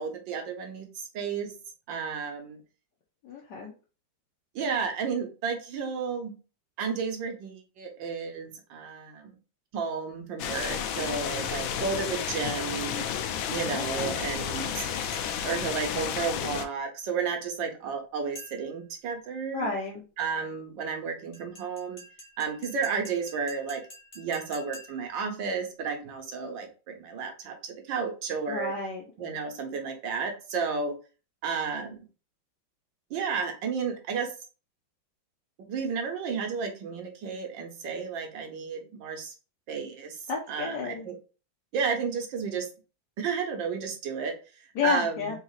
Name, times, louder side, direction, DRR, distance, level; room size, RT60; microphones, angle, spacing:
voice 1, 0.0-1.5 1.9-2.6 4.6-6.4 6.8-9.4 9.7-13.1 13.5-14.9 15.4-19.7 20.2-22.0 22.4-23.8 24.2-28.7 29.2-31.0 31.4-32.1 33.1-34.3 35.7-39.4 39.7-40.2 40.5-41.2 41.7-42.7 43.2-45.3, right 5 dB, 75° right, 4 dB, 1.6 m, -32 dB
voice 2, 3.2-3.7 13.7-14.2 19.5-20.1 28.5-29.0 40.3-41.1 44.7-45.4, left 5 dB, 65° left, -3 dB, 1.3 m, -31 dB
sound 1, 10.4-16.7, left 8 dB, 90° left, 1.4 m, -32 dB
sound 2, 15.1-15.6 18.3-18.9 21.3-25.2, equal, 30° left, 1.2 m, -49 dB
4.0 x 2.9 x 3.9 m, 0.34 s
omnidirectional pair, 2.1 m